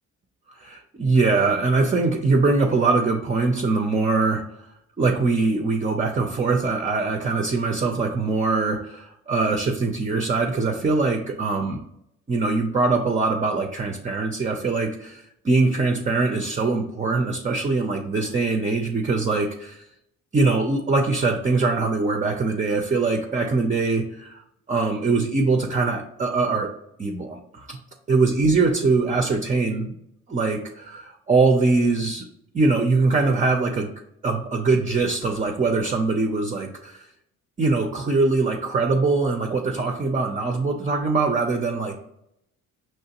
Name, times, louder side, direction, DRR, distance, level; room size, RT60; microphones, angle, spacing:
voice 1, 0.6-4.4 5.0-11.8 12.3-19.8 20.3-24.3 24.7-26.7 27.0-27.8 28.1-29.9 30.3-32.2 32.5-33.9 34.2-37.1 37.6-42.0, right 3 dB, 25° right, 3 dB, 0.5 m, -22 dB
5.6 x 3.1 x 2.9 m, 0.78 s
cardioid pair, 90°, 30 cm